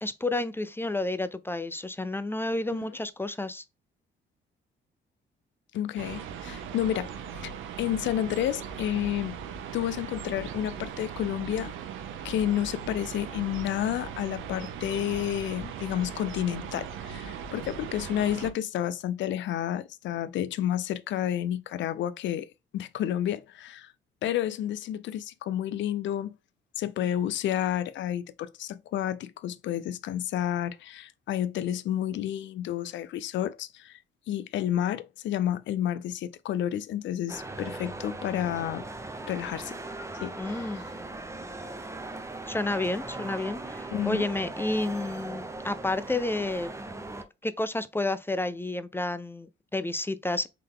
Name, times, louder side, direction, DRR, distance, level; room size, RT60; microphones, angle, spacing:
voice 1, 0.0-3.6 40.4-40.8 42.5-46.7 47.4-50.5, left 2 dB, 10° left, 0.3 m, -30 dB
voice 2, 5.7-7.5 7.8-9.4 9.7-11.7 12.2-22.5 22.7-23.9 24.2-26.3 26.8-34.0 34.3-38.8 39.3-39.8 40.1-40.8 43.9-44.3, left 11 dB, 70° left, 0.4 m, -30 dB
sound 1, 6.0-18.5, right 7 dB, 85° right, 0.7 m, -39 dB
sound 2, 37.3-47.2, right 2 dB, 15° right, 0.7 m, -39 dB
3.8 x 3.2 x 3.6 m
cardioid pair, 90°, 20 cm